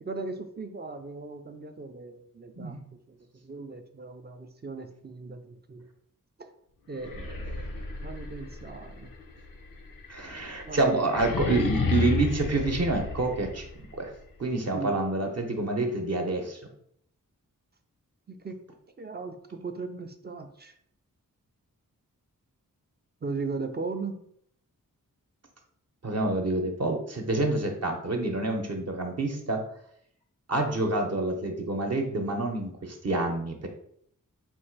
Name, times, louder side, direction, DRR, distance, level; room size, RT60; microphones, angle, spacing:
voice 1, 0.0-2.8 3.1-3.2 3.4-5.9 6.4-6.5 6.9-9.1 10.7-11.2 14.7-15.0 18.3-18.6 19.0-20.7 23.2-24.2, right 4 dB, 30° right, 7 dB, 0.4 m, -38 dB
sound 1, 6.9-13.8, left 3 dB, 90° left, 0.8 m, -32 dB
voice 2, 10.1-13.6 13.9-14.1 14.4-16.6 26.0-29.6 30.5-33.7, right 2 dB, 50° right, 2 dB, 0.8 m, -28 dB
4.2 x 2.4 x 4.5 m, 0.68 s
wide cardioid pair, 125°, 34 cm